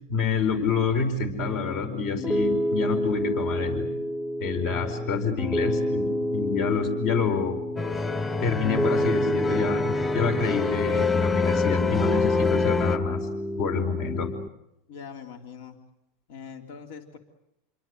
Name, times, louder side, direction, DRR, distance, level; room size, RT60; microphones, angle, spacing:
voice 1, 0.1-3.9 4.4-7.6 8.4-13.3 13.6-14.3, left 5 dB, 55° left, 8 dB, 4.9 m, -27 dB
Piano, 1.4-14.5, equal, 5° left, 1.0 m, -29 dB
sound 1, 7.8-13.0, left 4 dB, 20° left, 2.3 m, -26 dB
voice 2, 14.9-15.8 16.3-17.2, left 6 dB, 70° left, 5 dB, 3.3 m, -42 dB
29.0 x 23.5 x 8.0 m, 0.84 s
hypercardioid pair, 110°, 0 cm